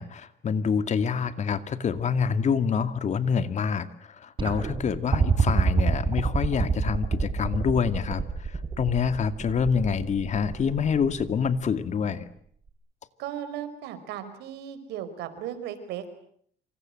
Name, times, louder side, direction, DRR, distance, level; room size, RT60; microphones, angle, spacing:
voice 1, 0.0-3.9 4.2-8.2 8.8-12.2, left 6 dB, 45° left, 11 dB, 2.2 m, -26 dB
sound 1, 4.4-11.5 12.7-12.8, right 5 dB, 30° right, 4.6 m, -26 dB
voice 2, 13.2-16.1, right 10 dB, 85° right, 11 dB, 4.9 m, -36 dB
27.5 x 26.5 x 7.8 m, 0.65 s
cardioid pair, 110°, 17 cm